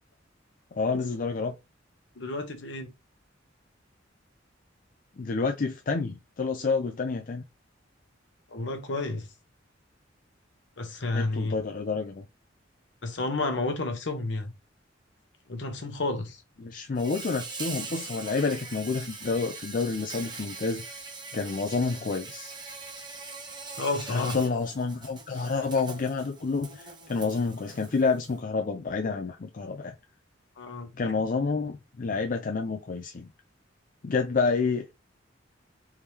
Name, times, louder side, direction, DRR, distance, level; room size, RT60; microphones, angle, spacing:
voice 1, 0.8-1.6 5.2-7.4 11.1-12.2 16.6-20.8 21.3-22.5 24.1-29.9 31.0-33.3 34.0-34.9, left 4 dB, 45° left, 0.4 m, -29 dB
voice 2, 2.2-2.9 8.5-9.3 10.8-11.6 13.0-14.5 15.5-16.4 23.8-24.4 30.6-31.1, left 2 dB, 65° left, 1.0 m, -31 dB
Insect, 16.9-28.4, right 4 dB, 25° right, 0.8 m, -42 dB
3.5 x 3.3 x 2.8 m
head